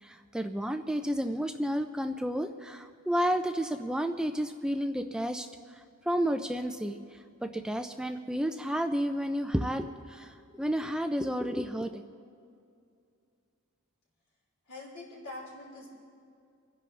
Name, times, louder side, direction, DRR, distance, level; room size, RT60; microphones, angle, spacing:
voice 1, 0.0-12.0, equal, 5° right, 6 dB, 0.4 m, -31 dB
voice 2, 14.7-15.9, left 2 dB, 65° left, -4 dB, 4.4 m, -44 dB
29.5 x 10.5 x 3.3 m, 2.4 s
head